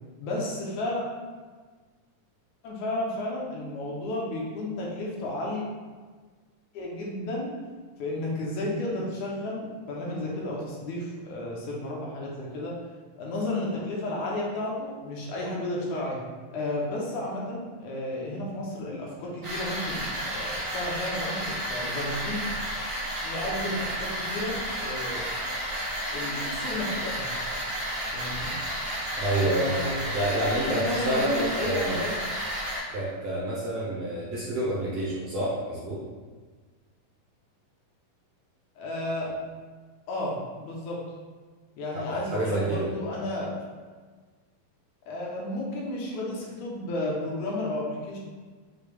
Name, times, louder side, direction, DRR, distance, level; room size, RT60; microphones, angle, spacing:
voice 1, 0.2-1.0 2.6-5.6 6.7-7.5 8.0-12.7 13.2-16.2 16.5-22.6 23.2-24.6 24.8-25.3 26.1-27.3 28.1-28.5 29.4-30.2 30.6-32.1 38.8-39.4 40.1-41.0 41.8-43.5 45.1-48.2, left 1 dB, 75° left, -3 dB, 1.9 m, -32 dB
sound 1, 19.4-32.8, equal, 50° right, 0.7 m, -32 dB
voice 2, 29.2-29.9 30.1-32.0 32.9-36.0 42.1-42.9, right 1 dB, 75° right, -7 dB, 1.4 m, -28 dB
6.7 x 2.3 x 3.2 m, 1.5 s
omnidirectional pair, 3.7 m